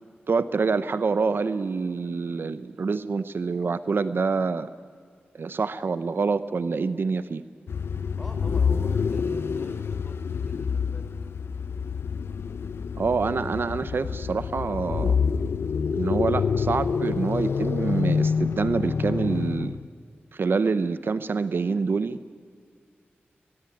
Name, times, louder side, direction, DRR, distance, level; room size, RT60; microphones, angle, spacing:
voice 1, 0.3-4.7 5.4-7.4 13.0-15.2 16.0-19.8 20.3-22.3, right 4 dB, 65° right, 14 dB, 0.7 m, -26 dB
sound 1, 7.7-19.9, left 6 dB, 90° left, 0.6 m, -27 dB
voice 2, 8.2-11.1, equal, 5° left, 4 dB, 4.5 m, -45 dB
23.0 x 21.0 x 9.2 m, 2.1 s
wide cardioid pair, 100°, 4 cm